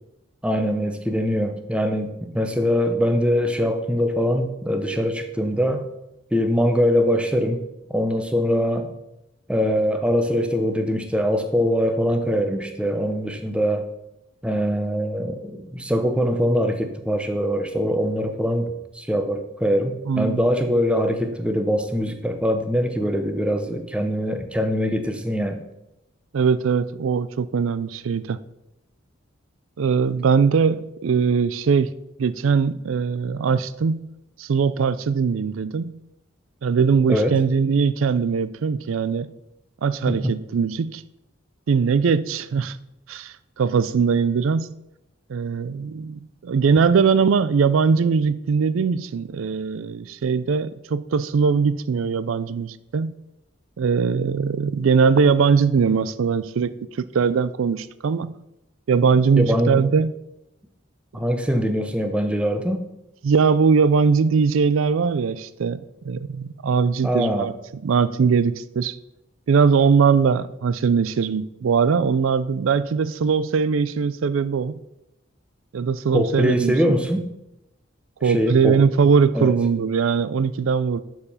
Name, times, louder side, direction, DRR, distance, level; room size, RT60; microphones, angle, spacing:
voice 1, 0.4-5.8 6.3-7.6 7.9-8.9 9.5-13.8 14.4-25.6 37.1-37.4 40.1-40.2 59.4-59.8 61.1-62.8 67.0-67.5 76.1-77.2 78.2-78.8 79.3-79.5, equal, 5° right, 6 dB, 0.7 m, -22 dB
voice 2, 20.1-20.4 26.3-28.4 29.8-31.9 32.2-34.1 34.4-36.0 36.6-39.3 39.8-41.0 41.7-42.8 43.1-44.7 45.3-53.2 53.8-58.3 58.9-60.1 63.2-67.5 67.8-69.0 69.5-74.7 75.7-76.8 78.2-81.0, right 5 dB, 80° right, 15 dB, 0.4 m, -21 dB
11.5 x 4.7 x 5.6 m, 0.88 s
head